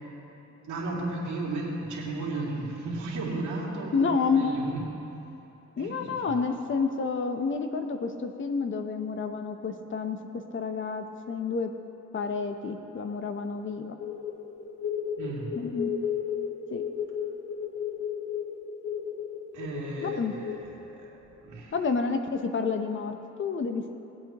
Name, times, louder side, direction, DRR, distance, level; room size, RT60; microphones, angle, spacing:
voice 1, 0.7-4.1 4.3-4.8 5.8-6.4 15.2-15.5 19.5-21.8, right 2 dB, 75° right, -4 dB, 2.5 m, -34 dB
voice 2, 3.9-4.5 5.8-10.2 10.5-11.7 12.1-14.0 15.6-15.9 16.7-16.8 20.0-20.3 21.7-24.0, left 5 dB, 40° left, 6 dB, 0.9 m, -29 dB
sound 1, 14.0-20.6, left 8 dB, 55° left, 1.4 m, -34 dB
19.0 x 8.1 x 3.0 m, 3.0 s
cardioid pair, 90°, 30 cm